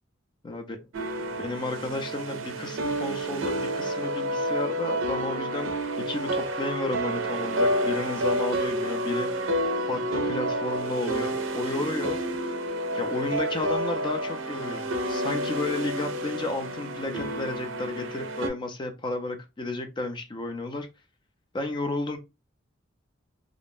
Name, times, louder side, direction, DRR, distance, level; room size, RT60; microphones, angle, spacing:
voice 1, 0.4-0.8 1.3-9.6 9.9-12.2 12.9-20.9 21.5-22.2, left 2 dB, 25° left, 0.4 m, -32 dB
sound 1, 0.9-18.5, right 1 dB, 80° right, 0.5 m, -29 dB
2.5 x 2.0 x 3.4 m
head